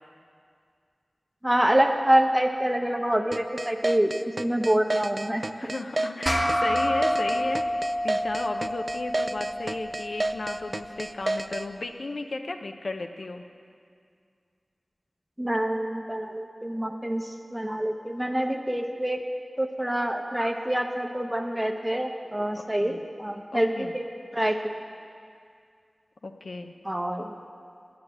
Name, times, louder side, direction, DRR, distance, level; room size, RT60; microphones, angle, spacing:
voice 1, 1.4-4.1 4.4-5.7 15.4-19.2 19.6-24.1 24.3-24.7 26.8-27.4, right 1 dB, 10° right, 4 dB, 0.7 m, -26 dB
sound 1, 3.3-11.7, right 2 dB, 45° right, 0.4 m, -30 dB
voice 2, 5.6-13.4 22.8-23.0 23.5-23.9 26.2-26.7, left 2 dB, 75° left, 6 dB, 0.7 m, -34 dB
sound 2, 6.3-11.0, equal, 5° left, 1.1 m, -29 dB
9.6 x 8.7 x 7.8 m, 2.3 s
wide cardioid pair, 55°, 0 cm